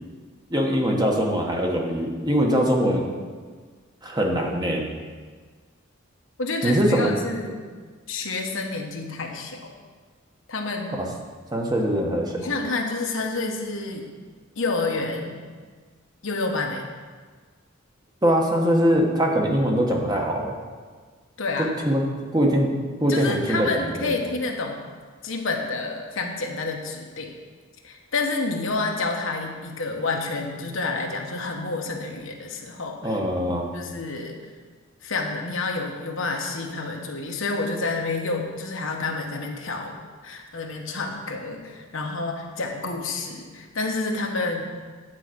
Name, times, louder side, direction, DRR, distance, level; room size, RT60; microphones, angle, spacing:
voice 1, 0.5-3.1 4.0-4.9 6.6-7.1 10.9-11.1 11.5-12.4 18.2-20.5 21.6-22.0 22.3-22.7 23.0-24.1 33.0-33.7, equal, 20° right, 0 dB, 1.1 m, -22 dB
voice 2, 6.4-7.7 8.1-9.6 10.5-11.0 12.4-14.1 14.6-15.4 16.2-16.9 21.4-21.7 23.1-24.8 25.2-27.4 27.8-33.2 33.7-34.4 35.0-40.0 40.2-44.6, left 3 dB, 65° left, 2 dB, 1.2 m, -29 dB
9.2 x 4.8 x 7.7 m, 1.5 s
head